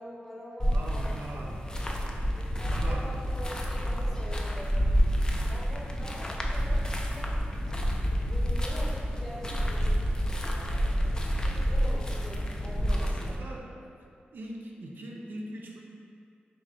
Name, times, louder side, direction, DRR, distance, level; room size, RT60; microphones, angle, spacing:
voice 1, 0.0-1.8 2.6-4.8 5.5-10.8 11.4-13.4, equal, 5° left, -5 dB, 0.7 m, -44 dB
sound 1, 0.6-13.4, equal, 20° left, 0.4 m, -29 dB
voice 2, 0.7-1.7 2.6-3.1 12.5-13.9 14.3-15.8, right 1 dB, 65° right, -1 dB, 0.4 m, -42 dB
3.3 x 2.6 x 4.1 m, 2.4 s
wide cardioid pair, 85°, 4 cm